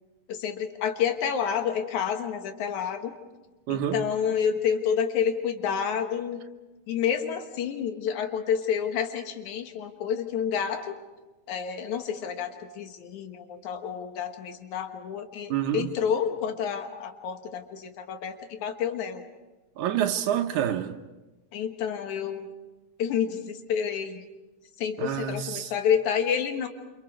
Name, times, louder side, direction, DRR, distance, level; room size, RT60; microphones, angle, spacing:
voice 1, 0.3-3.1 3.7-6.4 6.9-11.0 11.5-19.2 21.5-22.5 23.0-24.2 24.8-26.7, left 8 dB, 90° left, 2.9 m, -29 dB
voice 2, 3.7-4.0 15.5-15.9 19.8-21.0 25.0-25.7, right 10 dB, 90° right, 2.4 m, -27 dB
29.5 x 26.5 x 4.7 m
omnidirectional pair, 3.3 m